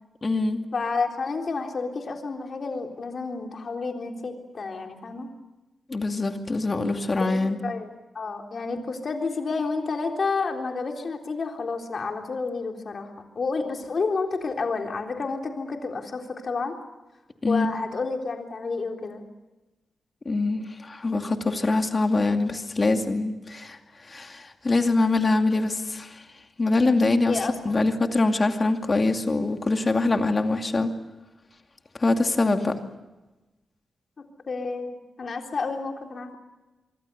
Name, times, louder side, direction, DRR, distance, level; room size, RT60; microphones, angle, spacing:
voice 1, 0.2-0.6 5.9-7.6 17.4-17.7 20.2-23.8 24.1-26.2 26.6-27.4 27.6-30.9 32.0-32.7, left 3 dB, 30° left, 5 dB, 2.4 m, -24 dB
voice 2, 0.7-5.3 7.2-7.9 8.1-16.8 17.5-19.2 27.3-27.7 34.5-36.4, left 4 dB, 50° left, 2 dB, 3.7 m, -30 dB
26.0 x 24.0 x 6.9 m, 1.1 s
wide cardioid pair, 125°, 0 cm